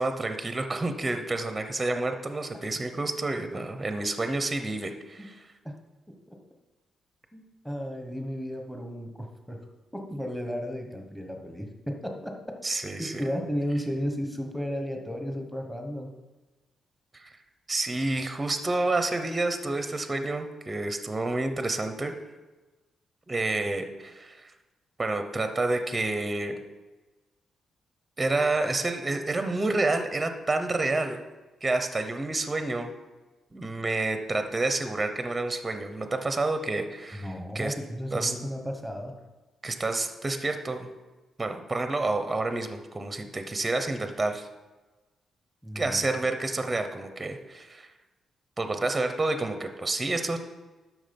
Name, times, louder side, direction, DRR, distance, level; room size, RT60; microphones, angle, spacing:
voice 1, 0.0-5.3 12.6-13.3 17.1-17.3 17.7-22.1 23.3-24.5 25.0-26.6 28.2-31.2 31.6-32.9 33.5-37.7 38.1-38.3 39.6-40.9 41.4-44.5 45.7-47.9 48.6-50.4, right 2 dB, 15° right, 7 dB, 0.8 m, -29 dB
voice 2, 7.3-9.7 9.9-16.1 37.1-39.1 45.6-46.0, equal, ahead, 3 dB, 1.2 m, -34 dB
12.0 x 6.1 x 5.3 m, 1.2 s
cardioid pair, 145°, 0 cm